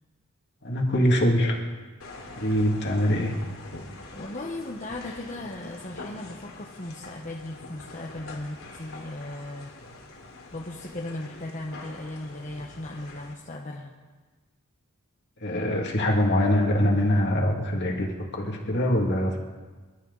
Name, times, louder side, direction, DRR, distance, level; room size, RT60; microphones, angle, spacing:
voice 1, 0.6-1.6 2.4-3.4 15.4-19.4, equal, 50° left, 1 dB, 2.5 m, -23 dB
sound 1, 2.0-13.3, left 2 dB, 70° left, 2.8 m, -44 dB
voice 2, 4.1-9.7 10.5-13.9, left 1 dB, 35° left, -2 dB, 1.2 m, -37 dB
28.0 x 12.5 x 4.1 m, 1.4 s
head